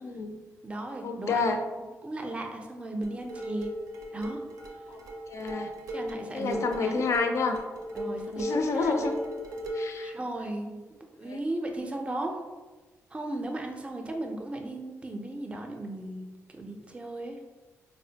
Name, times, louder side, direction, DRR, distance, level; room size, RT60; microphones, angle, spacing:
voice 1, 0.0-0.4 1.0-1.6 4.9-5.0 5.3-5.7 6.3-7.6 8.4-9.1 9.7-10.1 11.3-11.4, left 4 dB, 60° left, 6 dB, 0.4 m, -29 dB
voice 2, 0.6-1.4 2.0-3.7 4.1-4.4 5.9-7.0 7.9-9.0 10.0-10.8 11.2-12.4 13.1-16.3 16.5-17.4, right 1 dB, 20° right, 3 dB, 0.4 m, -36 dB
sound 1, 3.0-10.0, equal, 80° right, 0.5 m, -36 dB
3.5 x 2.0 x 2.7 m, 1.3 s
cardioid pair, 90°, 6 cm